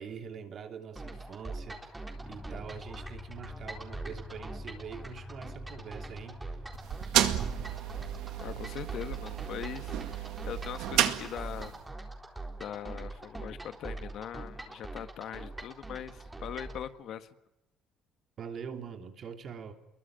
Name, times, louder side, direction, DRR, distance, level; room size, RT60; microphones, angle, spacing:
voice 1, 0.0-2.0 2.2-6.6 18.4-19.7, right 7 dB, 45° right, 7 dB, 3.1 m, -44 dB
sound 1, 1.0-16.8, right 2 dB, 10° right, 4.0 m, -43 dB
sound 2, 2.1-11.2, left 3 dB, 5° left, 4.4 m, -50 dB
sound 3, 6.7-11.8, right 12 dB, 80° right, 2.1 m, -32 dB
voice 2, 8.4-11.7 12.6-17.3, left 10 dB, 60° left, 11 dB, 1.6 m, -41 dB
28.5 x 22.5 x 9.1 m, 0.94 s
cardioid pair, 125°, 0 cm